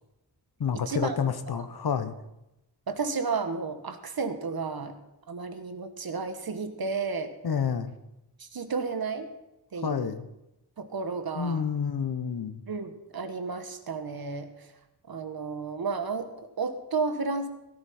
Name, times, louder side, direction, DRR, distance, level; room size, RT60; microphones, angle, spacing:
voice 1, 0.6-2.2 7.4-7.9 9.8-10.3 11.3-12.6, left 7 dB, 70° left, 10 dB, 1.0 m, -29 dB
voice 2, 2.9-5.0 5.3-7.3 8.4-9.3 9.7-10.1 10.8-11.6 12.7-14.7 15.1-17.5, right 4 dB, 65° right, 8 dB, 1.4 m, -32 dB
17.0 x 11.5 x 4.3 m, 0.93 s
wide cardioid pair, 105°, 39 cm